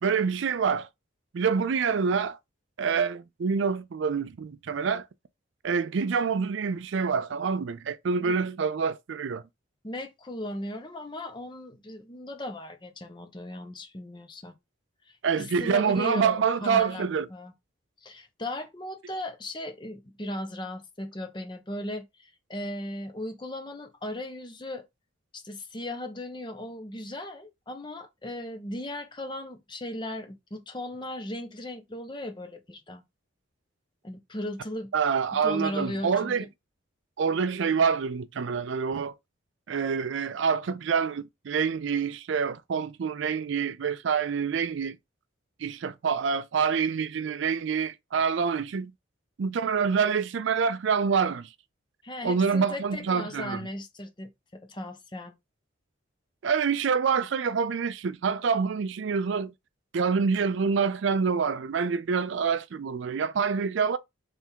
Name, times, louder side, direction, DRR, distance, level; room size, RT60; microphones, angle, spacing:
voice 1, 0.0-0.9 1.3-2.4 2.8-5.1 5.6-9.4 15.2-17.3 34.9-36.4 37.2-39.1 39.7-45.0 45.6-48.9 49.4-51.5 52.2-53.7 56.4-59.5 59.9-64.0, right 6 dB, 65° right, 0.4 m, -26 dB
voice 2, 9.8-14.6 15.1-17.5 18.0-24.8 25.3-33.0 34.0-34.9 35.4-36.5 52.0-55.3, left 1 dB, 20° left, 0.6 m, -37 dB
3.5 x 3.4 x 4.4 m
head